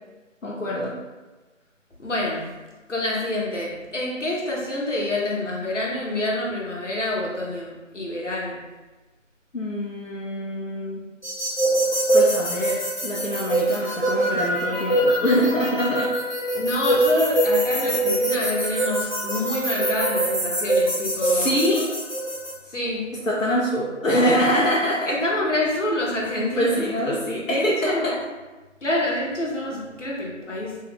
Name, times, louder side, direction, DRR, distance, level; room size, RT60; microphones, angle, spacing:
voice 1, 0.4-0.9 9.5-11.0 12.1-16.1 21.2-21.9 23.3-25.1 26.5-28.1, equal, 90° left, -4 dB, 0.7 m, -24 dB
voice 2, 2.0-2.6 2.9-8.6 16.5-21.6 22.6-23.1 25.1-26.9 27.4-28.1 28.8-30.8, left 1 dB, 65° left, -3 dB, 1.0 m, -27 dB
sound 1, 11.2-22.5, right 1 dB, 35° left, 0.9 m, -23 dB
3.1 x 2.4 x 3.4 m, 1.2 s
figure-of-eight pair, 170°, 39 cm